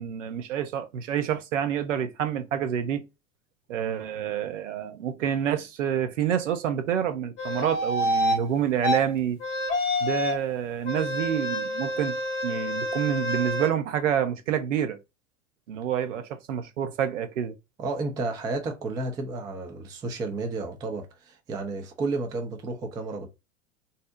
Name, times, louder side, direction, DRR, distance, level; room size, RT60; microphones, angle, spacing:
voice 1, 0.0-3.0 3.7-9.4 10.0-12.2 12.4-15.0 15.7-17.5, right 9 dB, 65° right, 0.6 m, -28 dB
sound 1, 7.4-8.4 8.8-9.0 9.4-10.4 10.8-13.7, left 1 dB, 30° left, 0.7 m, -27 dB
voice 2, 17.8-23.3, right 3 dB, 10° right, 0.3 m, -32 dB
2.7 x 2.0 x 3.6 m
figure-of-eight pair, 80°, 40 cm